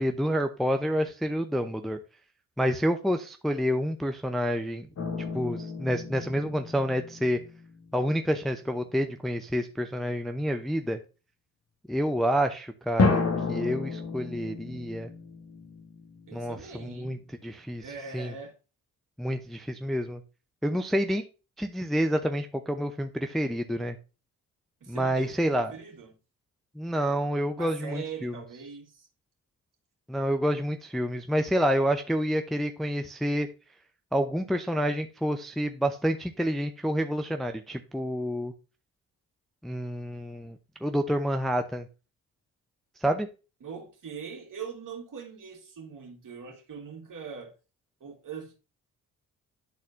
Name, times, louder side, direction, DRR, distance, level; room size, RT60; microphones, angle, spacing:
voice 1, 0.0-2.0 2.6-4.9 5.3-7.4 7.9-11.0 11.9-13.2 13.5-15.1 16.3-17.2 17.4-17.8 18.1-18.3 19.2-20.2 20.6-21.2 21.6-24.0 24.9-25.7 26.8-28.3 30.1-33.5 34.1-38.5 39.6-40.6 40.8-41.9 43.0-43.3, equal, ahead, 0.6 m, -28 dB
sound 1, 5.0-8.1 13.0-16.6, left 4 dB, 35° left, 1.3 m, -31 dB
voice 2, 16.3-17.2 17.8-18.5 24.8-26.2 27.5-29.1 43.6-47.6 48.0-48.6, right 6 dB, 45° right, 2.2 m, -42 dB
10.5 x 4.1 x 2.6 m
hypercardioid pair, 40°, 43 cm